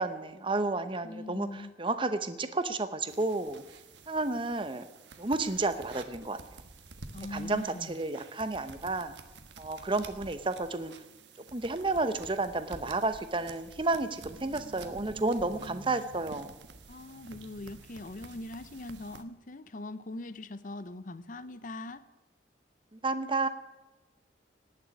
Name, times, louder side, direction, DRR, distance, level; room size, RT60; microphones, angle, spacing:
voice 1, 0.0-3.6 4.1-4.9 5.2-6.4 7.3-9.1 9.6-10.9 11.5-16.5 22.9-23.5, right 2 dB, 30° right, 10 dB, 0.8 m, -31 dB
voice 2, 1.0-1.7 7.1-8.0 16.9-22.0, left 2 dB, 45° left, 14 dB, 0.7 m, -41 dB
sound 1, 3.1-19.2, right 3 dB, 75° right, 1.4 m, -49 dB
18.0 x 7.1 x 9.8 m, 1.1 s
head